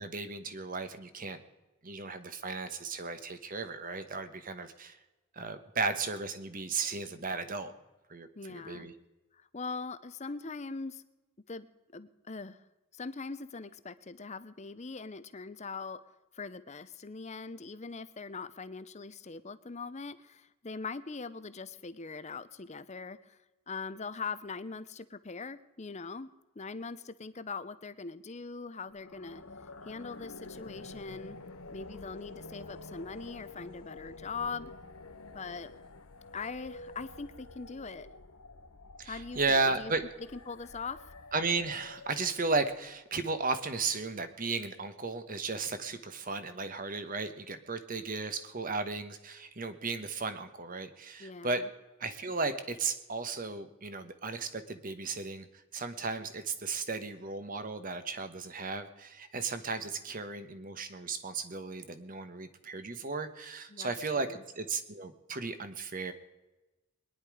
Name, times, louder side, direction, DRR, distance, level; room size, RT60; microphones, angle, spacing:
voice 1, 0.0-1.4 1.8-5.0 5.3-7.7 8.1-8.9 39.0-40.1 41.3-51.7 52.0-55.5 55.7-66.1, right 4 dB, 40° right, 10 dB, 1.2 m, -35 dB
voice 2, 8.3-8.9 9.3-11.0 11.5-11.7 11.9-12.6 12.9-16.0 16.3-23.4 23.7-26.3 26.6-29.4 29.8-31.4 31.7-34.7 35.3-35.7 36.3-38.1 39.1-39.9 40.3-41.0 51.2-51.7 63.7-64.4, left 4 dB, 30° left, 14 dB, 0.7 m, -41 dB
sound 1, 28.9-43.0, left 3 dB, 85° left, 1.3 m, -49 dB
21.5 x 10.5 x 4.9 m, 1.1 s
head